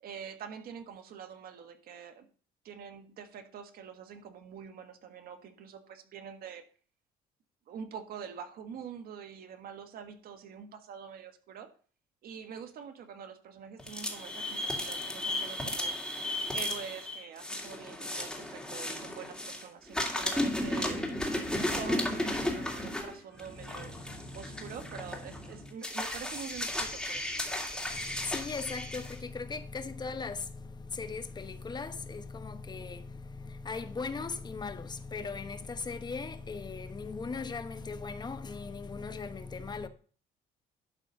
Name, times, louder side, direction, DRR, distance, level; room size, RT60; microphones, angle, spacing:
voice 1, 0.0-2.3 2.6-6.6 7.7-11.7 12.2-16.0 16.5-21.1 21.7-24.0 24.3-27.3, right 7 dB, 65° right, 1.5 m, -45 dB
sound 1, 13.8-19.6 19.9-29.1, left 1 dB, 5° left, 2.4 m, -34 dB
voice 2, 27.8-39.9, left 4 dB, 25° left, 1.0 m, -38 dB
11.5 x 4.2 x 6.4 m
cardioid pair, 110°, 17 cm